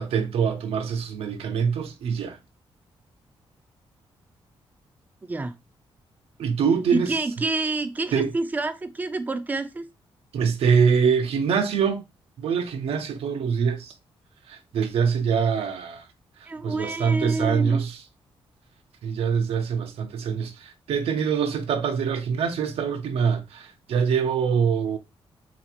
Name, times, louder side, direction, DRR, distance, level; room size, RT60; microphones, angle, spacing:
voice 1, 0.0-2.4 6.4-7.2 8.1-8.3 10.3-12.0 12.4-13.9 14.5-16.0 16.6-18.0 19.0-25.0, right 6 dB, 80° right, 0.5 m, -24 dB
voice 2, 6.9-9.8 16.5-17.8, right 3 dB, 15° right, 0.4 m, -28 dB
3.9 x 2.4 x 2.9 m
wide cardioid pair, 160°, 10 cm